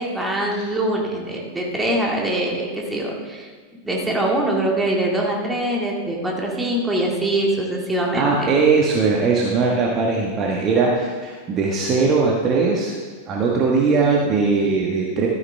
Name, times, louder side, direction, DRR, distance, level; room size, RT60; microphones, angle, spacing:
voice 1, 0.0-3.5 3.8-8.5, right 1 dB, 10° right, -1 dB, 2.2 m, -23 dB
voice 2, 8.1-13.0 13.3-15.3, right 4 dB, 30° right, -2 dB, 1.4 m, -19 dB
13.0 x 9.5 x 3.5 m, 1.5 s
figure-of-eight pair, 90°, 0 cm